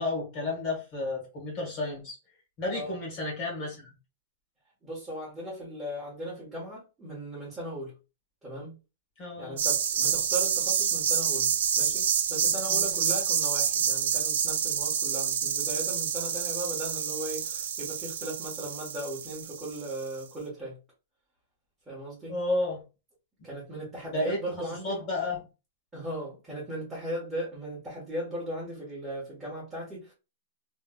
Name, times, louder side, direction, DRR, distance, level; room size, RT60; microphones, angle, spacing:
voice 1, 0.0-2.1 2.6-3.9 9.2-9.6 12.7-13.0 22.3-22.8 24.0-25.4, left 2 dB, 30° left, 1.5 m, -32 dB
voice 2, 4.8-7.9 8.4-8.8 9.4-11.5 11.8-20.8 21.9-22.3 23.4-25.0 25.9-30.1, right 1 dB, 10° right, 1.3 m, -37 dB
sound 1, 9.6-20.1, right 8 dB, 70° right, 0.5 m, -28 dB
3.2 x 3.0 x 2.3 m
supercardioid pair, 170°, 0 cm